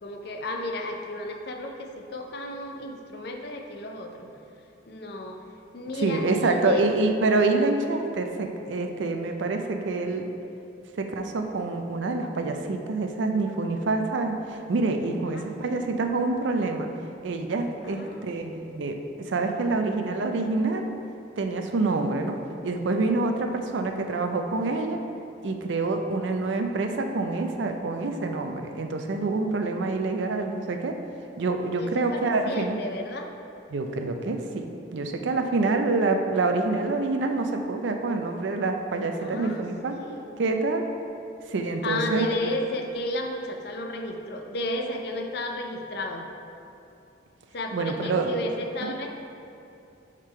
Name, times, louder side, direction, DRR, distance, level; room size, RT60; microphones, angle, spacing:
voice 1, 0.0-4.3 4.9-5.4 5.7-6.9 15.3-15.8 17.8-18.3 31.8-33.3 39.2-39.6 39.9-40.3 41.8-46.3 47.5-49.1, left 1 dB, 60° left, 3 dB, 0.5 m, -33 dB
voice 2, 6.0-10.3 11.0-16.9 17.2-20.9 21.4-22.4 22.6-25.0 25.4-31.0 31.4-32.8 33.7-34.6 34.9-39.9 40.4-40.9 41.5-42.4 47.7-48.3 48.8-48.9, right 3 dB, 75° right, 5 dB, 0.5 m, -26 dB
4.9 x 3.6 x 5.5 m, 2.6 s
head